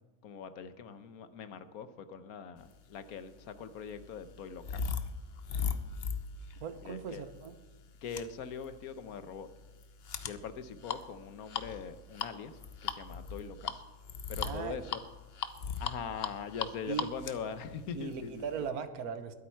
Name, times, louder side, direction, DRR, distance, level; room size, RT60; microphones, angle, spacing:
voice 1, 0.2-4.9 6.8-7.2 8.0-9.5 10.2-13.8 14.3-15.0 15.8-18.4, left 6 dB, 80° left, 11 dB, 1.4 m, -42 dB
sound 1, 3.0-18.7, left 6 dB, 50° left, 0.9 m, -39 dB
voice 2, 6.6-7.6 14.4-14.8 16.9-17.1 17.9-19.3, right 6 dB, 85° right, 10 dB, 1.4 m, -38 dB
21.5 x 8.7 x 4.6 m, 1.2 s
omnidirectional pair, 1.5 m